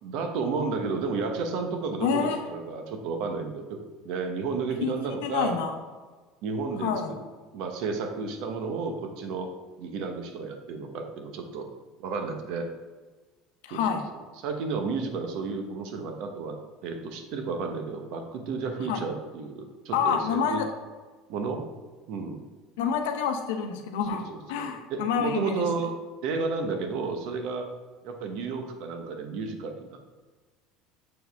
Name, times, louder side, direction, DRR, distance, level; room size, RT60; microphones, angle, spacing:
voice 1, 0.0-3.8 4.0-5.6 6.4-6.9 7.5-9.5 9.8-11.7 12.0-12.7 13.7-14.0 14.4-20.6 21.3-21.6 22.1-22.4 24.1-26.0 26.2-27.7 28.0-30.2, right 4 dB, 70° right, 5 dB, 0.9 m, -32 dB
voice 2, 2.0-2.4 4.8-5.7 6.8-7.1 13.6-14.0 18.9-19.0 19.9-20.7 22.8-25.6, left 6 dB, 90° left, 5 dB, 0.8 m, -28 dB
6.7 x 4.4 x 3.4 m, 1.3 s
supercardioid pair, 110°, 0 cm